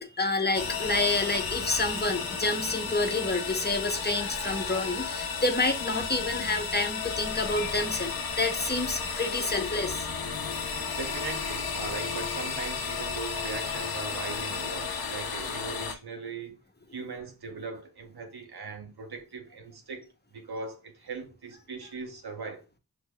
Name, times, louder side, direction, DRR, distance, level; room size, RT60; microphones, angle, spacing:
voice 1, 0.0-10.1, left 2 dB, 25° left, 0.8 m, -29 dB
sound 1, 0.5-15.9, left 5 dB, 70° left, 0.7 m, -33 dB
voice 2, 10.9-16.6 16.9-20.1 20.3-22.6, right 4 dB, 85° right, 1.0 m, -39 dB
6.3 x 2.7 x 2.2 m
cardioid pair, 45°, 38 cm